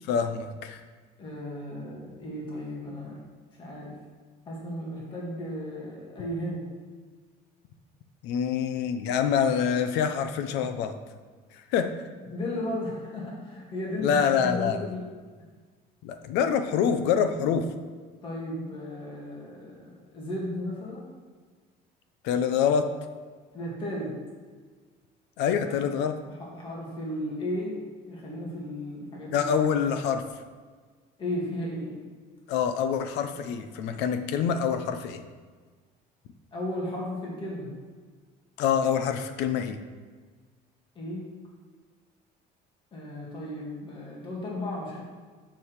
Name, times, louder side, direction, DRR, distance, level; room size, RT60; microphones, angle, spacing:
voice 1, 0.1-0.8 8.2-11.0 11.5-11.9 14.0-14.8 16.0-17.7 22.2-22.9 25.4-26.2 29.3-30.2 32.5-35.2 38.6-39.8, left 7 dB, 80° left, 8 dB, 0.8 m, -26 dB
voice 2, 1.2-3.2 3.5-4.0 4.5-6.7 12.3-15.1 18.2-21.1 23.5-24.2 25.7-25.8 26.3-27.8 28.1-29.5 31.2-32.0 36.5-37.7 41.0-41.3 42.9-45.0, left 1 dB, 30° left, -4 dB, 2.0 m, -35 dB
7.1 x 5.7 x 6.6 m, 1.5 s
cardioid pair, 170°, 17 cm